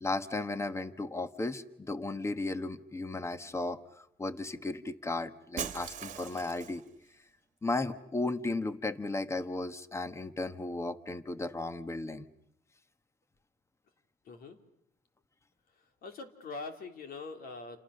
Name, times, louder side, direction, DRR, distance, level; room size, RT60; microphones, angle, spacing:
voice 1, 0.0-6.8 7.6-12.2, left 2 dB, 15° left, 11 dB, 1.4 m, -35 dB
Shatter, 5.6-6.9, right 8 dB, 45° right, 1.7 m, -40 dB
voice 2, 14.2-14.6 16.0-17.8, left 3 dB, 60° left, 6 dB, 3.4 m, -43 dB
29.5 x 27.5 x 6.6 m, 0.77 s
cardioid pair, 110°, 17 cm